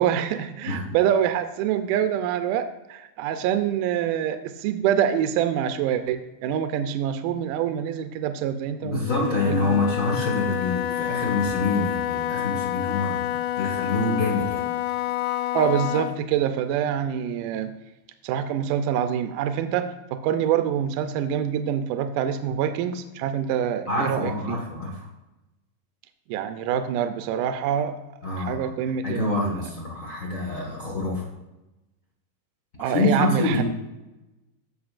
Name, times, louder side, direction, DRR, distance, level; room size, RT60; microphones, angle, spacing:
voice 1, 0.0-9.8 15.5-17.7 18.2-24.6 26.3-28.0 28.4-29.5 32.8-33.6, right 9 dB, 85° right, 8 dB, 2.2 m, -25 dB
voice 2, 8.8-13.3 13.6-14.6 23.9-25.1 28.2-28.7 29.0-31.2 32.8-33.6, left 3 dB, 50° left, -2 dB, 0.9 m, -26 dB
Wind instrument woodwind instrument, 9.0-16.2, left 12 dB, 80° left, 2.0 m, -28 dB
15.5 x 5.7 x 2.4 m, 1.0 s
omnidirectional pair, 3.8 m